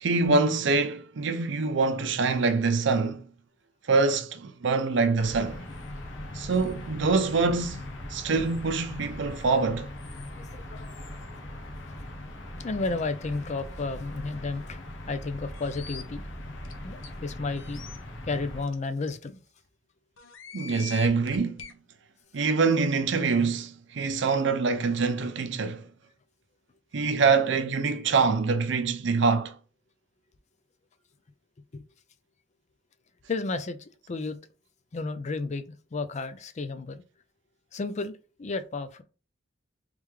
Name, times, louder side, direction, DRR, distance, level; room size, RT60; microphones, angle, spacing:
voice 1, 0.0-3.3 3.9-5.7 6.3-9.9 20.5-21.7 22.3-25.9 26.9-29.6, right 4 dB, 65° right, 0.5 m, -25 dB
sound 1, 5.2-18.6, left 1 dB, 70° left, 1.0 m, -40 dB
voice 2, 10.4-11.0 12.6-14.8 15.1-16.2 16.8-17.8 18.2-19.4 31.7-31.8 33.3-34.4 34.9-37.0 37.7-39.0, left 3 dB, 40° left, 0.4 m, -32 dB
sound 2, 15.5-16.0 16.6-16.7 17.0-17.1 17.6-18.0 18.7-18.8 19.1-19.2 20.2-21.7, left 6 dB, 90° left, 0.7 m, -42 dB
3.5 x 3.3 x 3.2 m
head